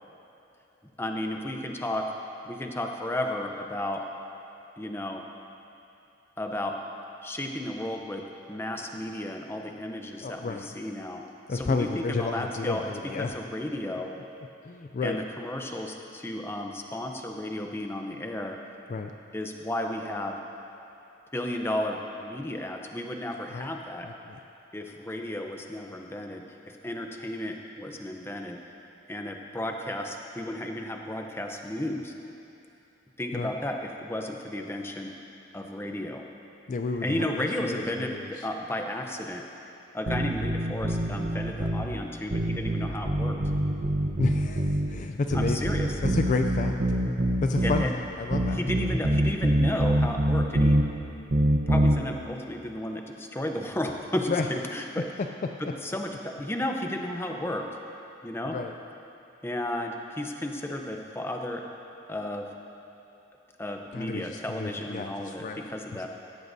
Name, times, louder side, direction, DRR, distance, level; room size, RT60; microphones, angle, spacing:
voice 1, 1.0-2.1 2.4-4.1 4.8-5.2 6.4-6.8 7.2-11.2 11.5-14.1 15.0-18.6 19.3-20.4 21.3-24.1 24.7-28.6 29.1-32.1 33.2-35.1 35.5-36.2 37.0-39.4 39.9-43.4 45.3-46.0 47.6-47.9 48.5-50.8 51.7-55.1 55.6-57.7 58.2-58.6 59.4-61.6 62.1-62.5 63.6-66.1, left 1 dB, 10° left, 3 dB, 0.7 m, -33 dB
voice 2, 10.2-10.7 11.5-13.3 14.7-15.2 18.9-19.1 23.5-23.7 24.3-24.4 33.3-33.5 36.7-38.5 44.2-45.7 46.0-46.8 47.4-47.8 48.2-48.6 54.3-54.4 58.4-58.7 63.9-65.6, left 3 dB, 40° left, 5 dB, 0.3 m, -30 dB
sound 1, 40.1-41.9 42.3-44.9 45.3-47.9 48.3-50.8 51.3-52.0, right 1 dB, 50° right, 0.9 m, -25 dB
17.0 x 13.0 x 2.7 m, 2.9 s
head